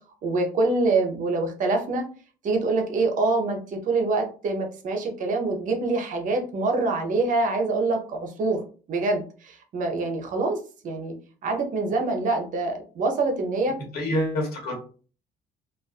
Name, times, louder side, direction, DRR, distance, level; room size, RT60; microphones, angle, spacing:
voice 1, 0.2-2.1 2.4-8.6 8.9-10.6 10.8-11.1 11.4-13.8, right 3 dB, 50° right, 3 dB, 0.7 m, -25 dB
voice 2, 13.9-14.7, left 1 dB, 65° left, 0 dB, 1.2 m, -26 dB
2.4 x 2.3 x 2.4 m, 0.39 s
cardioid pair, 110°, 17 cm